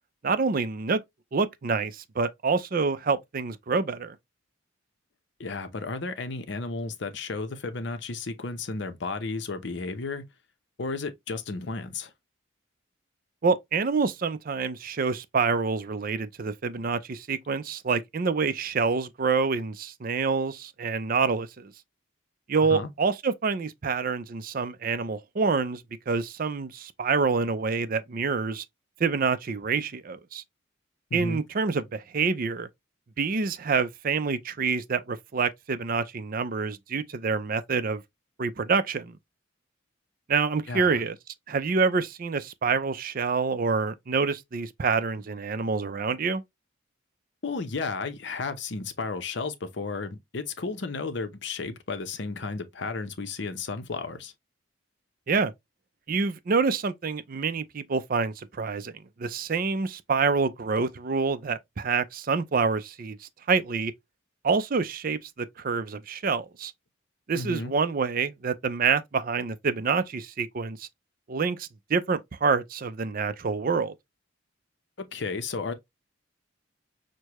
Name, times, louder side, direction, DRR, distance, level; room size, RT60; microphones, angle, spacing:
voice 1, 0.2-1.0 1.3-4.2 13.4-21.7 22.5-28.6 29.0-30.4 31.1-32.7 33.2-38.0 38.4-39.1 40.3-41.2 41.5-46.4 55.3-55.5 56.1-58.9 59.2-63.2 63.5-63.9 64.4-66.7 67.3-70.9 71.3-73.9, right 5 dB, 45° right, 0.5 m, -27 dB
voice 2, 5.4-10.2 10.8-12.1 22.7-22.9 31.1-31.4 40.7-41.0 47.4-54.3 67.3-67.7 75.0-75.7, left 3 dB, 60° left, 0.7 m, -33 dB
6.4 x 2.2 x 2.9 m
head